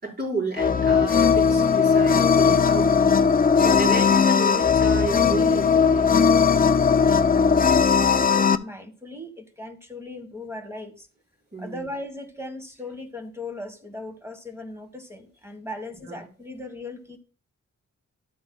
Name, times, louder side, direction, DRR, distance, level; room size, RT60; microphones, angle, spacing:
voice 1, 0.0-3.1 3.6-6.1 11.5-11.9 16.1-16.2, right 3 dB, 35° right, -3 dB, 5.0 m, -32 dB
sound 1, 0.6-8.6, left 6 dB, 30° left, 0.4 m, -18 dB
voice 2, 6.5-11.1 11.6-17.2, left 2 dB, 10° right, 6 dB, 1.5 m, -38 dB
12.5 x 8.5 x 2.3 m, 0.37 s
wide cardioid pair, 90°, 30 cm